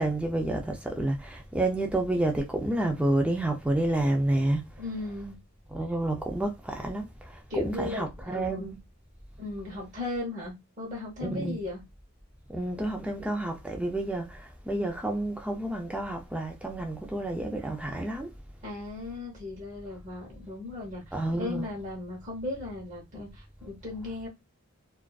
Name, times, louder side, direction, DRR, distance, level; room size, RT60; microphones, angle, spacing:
voice 1, 0.0-4.7 5.7-8.7 11.2-11.6 12.5-18.3 21.1-21.7, right 1 dB, 5° right, 0.3 m, -29 dB
voice 2, 4.8-5.4 7.5-8.8 9.4-11.8 18.6-24.3, left 2 dB, 35° right, 0.8 m, -37 dB
2.4 x 2.3 x 2.3 m
head